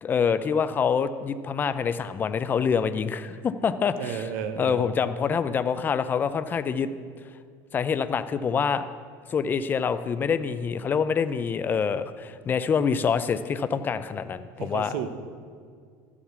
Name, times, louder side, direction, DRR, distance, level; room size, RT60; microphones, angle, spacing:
voice 1, 0.0-4.2 4.6-6.9 7.7-8.9 9.3-14.9, left 6 dB, 20° left, 12 dB, 0.5 m, -26 dB
voice 2, 4.0-4.9 14.6-15.1, right 7 dB, 75° right, 9 dB, 1.0 m, -32 dB
13.0 x 7.3 x 6.9 m, 2.1 s
cardioid pair, 155°, 9 cm